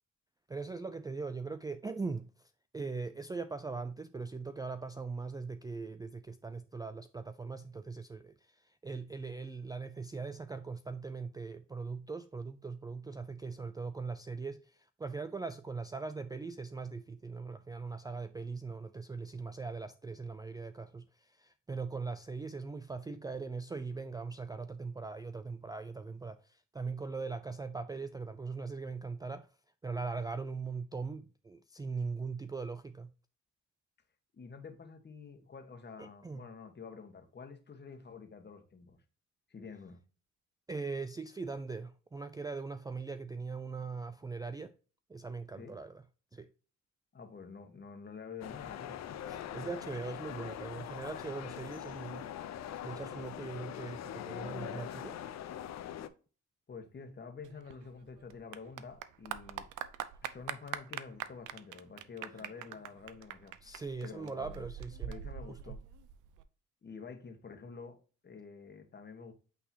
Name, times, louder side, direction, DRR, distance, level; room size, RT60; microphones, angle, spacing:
voice 1, 0.5-29.5 29.8-33.1 36.0-36.4 40.7-44.7 45.1-46.0 46.3-46.5 49.3-55.2 63.6-65.2 65.5-65.8, right 4 dB, 15° right, 0.4 m, -40 dB
voice 2, 34.3-39.0 39.5-40.0 45.6-45.7 47.1-49.0 56.7-59.6 60.2-63.5 64.0-64.7 65.1-65.8 66.8-68.0 68.2-69.3, left 5 dB, 35° left, 1.5 m, -48 dB
sound 1, 48.4-56.1, left 10 dB, 60° left, 0.7 m, -42 dB
Clapping / Applause, 57.4-66.4, right 10 dB, 80° right, 0.6 m, -43 dB
8.4 x 4.0 x 2.8 m
cardioid pair, 90°, 30 cm